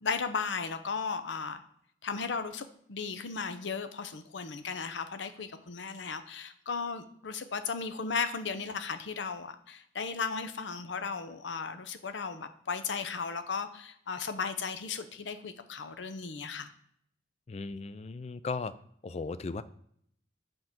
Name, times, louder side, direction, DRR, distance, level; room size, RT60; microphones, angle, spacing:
voice 1, 0.0-1.6 2.0-16.7, left 5 dB, 80° left, 9 dB, 0.7 m, -35 dB
voice 2, 17.5-18.7 19.0-19.6, left 4 dB, 35° left, 14 dB, 0.4 m, -36 dB
7.8 x 3.7 x 5.9 m, 0.67 s
head